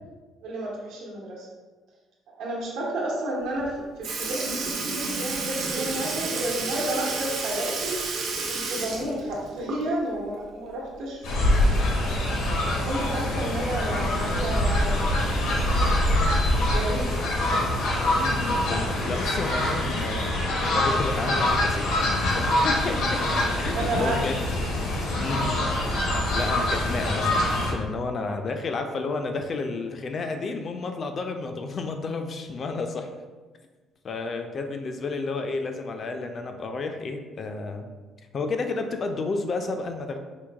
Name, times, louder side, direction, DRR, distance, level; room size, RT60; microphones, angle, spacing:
voice 1, 0.4-1.5 2.3-8.0 8.5-11.7 12.6-15.4 16.7-17.2 23.7-24.2 25.3-25.5, right 1 dB, 85° right, -3 dB, 1.0 m, -31 dB
Sink (filling or washing) / Liquid, 3.6-3.7 4.0-10.1 10.5-10.6 12.1-12.2 13.2-13.3 14.1-14.3 15.1-15.2, right 4 dB, 60° right, 0.6 m, -31 dB
Fowl, 11.2-27.7, left 1 dB, 85° left, 0.9 m, -24 dB
voice 2, 18.2-24.4 25.2-26.0 26.3-33.1 34.0-37.9 38.3-40.2, left 3 dB, 35° left, 6 dB, 0.3 m, -31 dB
4.5 x 2.1 x 3.4 m, 1.3 s
cardioid pair, 150°, 0 cm